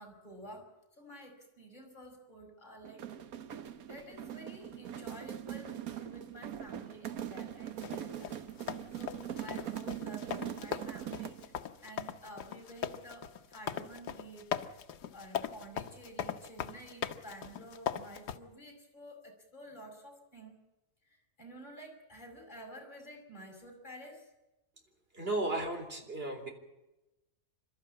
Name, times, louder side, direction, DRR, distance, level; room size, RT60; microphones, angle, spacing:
voice 1, 0.0-3.1 3.3-8.4 8.9-14.8 15.1-20.6 21.0-24.3, right 1 dB, 30° left, 2 dB, 5.6 m, -51 dB
sound 1, 2.8-11.5, right 10 dB, 65° right, 1.4 m, -42 dB
sound 2, 7.8-18.4, left 9 dB, 80° left, 1.5 m, -39 dB
voice 2, 25.1-26.5, right 2 dB, 35° right, 4 dB, 4.0 m, -34 dB
28.5 x 13.0 x 8.6 m, 0.99 s
omnidirectional pair, 1.7 m